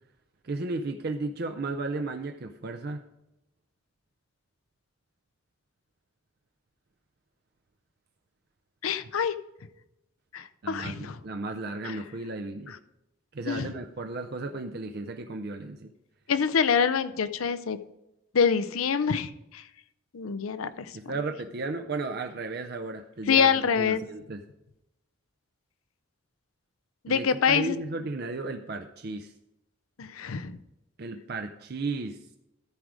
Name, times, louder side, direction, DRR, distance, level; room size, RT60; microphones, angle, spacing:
voice 1, 0.4-3.0 10.6-12.8 13.3-15.9 20.9-24.4 27.1-29.3 31.0-32.2, right 3 dB, 50° right, 6 dB, 0.5 m, -34 dB
voice 2, 8.8-9.3 10.3-11.2 11.8-12.0 12.7-12.8 13.5-13.7 16.3-17.8 18.3-19.6 20.1-20.9 23.3-24.0 27.0-27.8 30.0-30.6, left 6 dB, 80° left, 14 dB, 0.6 m, -26 dB
13.5 x 4.8 x 5.0 m, 0.89 s
head